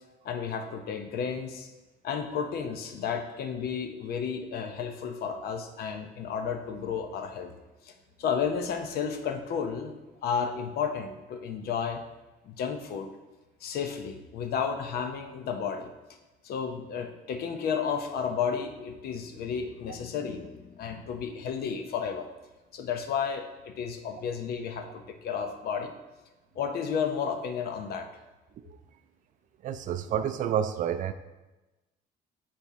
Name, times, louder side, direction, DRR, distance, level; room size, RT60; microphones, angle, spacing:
voice 1, 0.2-1.7 2.0-7.5 7.8-9.9 10.2-12.0 12.4-13.1 13.6-15.9 16.4-22.3 22.7-25.9 26.6-28.1, left 6 dB, 65° left, 6 dB, 0.7 m, -32 dB
voice 2, 29.6-31.1, right 9 dB, 50° right, 10 dB, 0.4 m, -29 dB
7.5 x 4.2 x 3.6 m, 1.1 s
cardioid pair, 110°, 17 cm